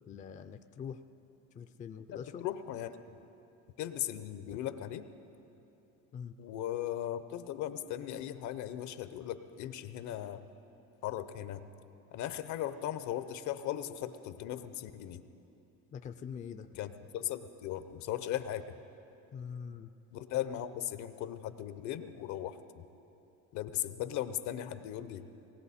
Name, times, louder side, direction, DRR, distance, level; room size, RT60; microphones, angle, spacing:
voice 1, 0.1-1.0 1.5-2.5 6.1-6.3 15.9-16.8 19.3-19.9, left 7 dB, 25° left, 9 dB, 0.4 m, -44 dB
voice 2, 2.1-3.0 3.8-5.1 6.4-10.4 11.0-11.6 12.1-15.2 16.8-18.6 20.1-22.9 23.5-25.3, left 11 dB, 65° left, 12 dB, 0.7 m, -38 dB
19.0 x 17.5 x 4.2 m, 2.9 s
cardioid pair, 140°, 31 cm